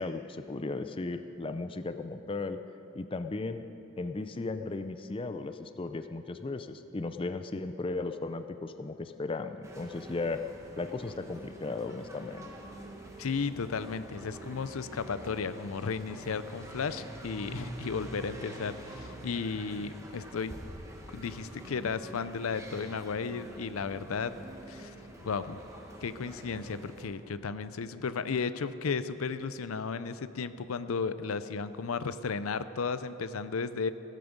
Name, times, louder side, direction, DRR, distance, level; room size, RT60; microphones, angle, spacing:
voice 1, 0.0-2.6 2.9-3.7 4.0-10.4 10.8-12.5, left 3 dB, 25° left, 9 dB, 0.4 m, -36 dB
sound 1, 9.6-27.1, right 1 dB, 15° right, 1.3 m, -46 dB
voice 2, 13.2-20.6 21.1-24.4 24.7-24.9 25.2-25.6 26.0-33.9, left 5 dB, 90° left, 13 dB, 0.5 m, -34 dB
16.5 x 13.0 x 5.2 m, 2.9 s
head